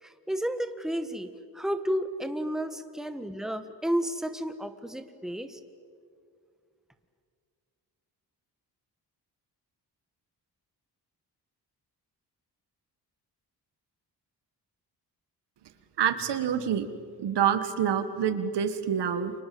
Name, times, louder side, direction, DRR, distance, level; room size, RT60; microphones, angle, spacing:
voice 1, 0.0-5.6, equal, ahead, 9 dB, 1.5 m, -32 dB
voice 2, 16.0-16.9 17.2-19.3, right 8 dB, 90° right, 10 dB, 1.8 m, -27 dB
29.0 x 25.5 x 7.8 m, 2.2 s
cardioid pair, 105°, 40 cm